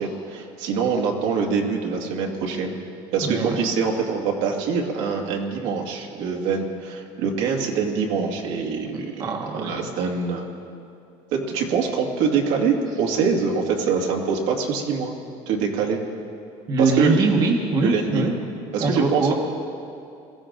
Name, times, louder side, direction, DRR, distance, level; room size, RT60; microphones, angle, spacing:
voice 1, 0.0-2.8 3.1-9.2 9.6-10.5 11.3-15.1 15.5-16.0 16.8-17.2 17.8-18.3 18.7-19.3, right 5 dB, 80° right, 0 dB, 2.1 m, -24 dB
voice 2, 3.2-3.6 8.9-9.9 16.7-18.4 18.8-19.3, right 3 dB, 35° right, 1 dB, 1.3 m, -23 dB
22.5 x 15.0 x 3.8 m, 2.5 s
cardioid pair, 145°, 12 cm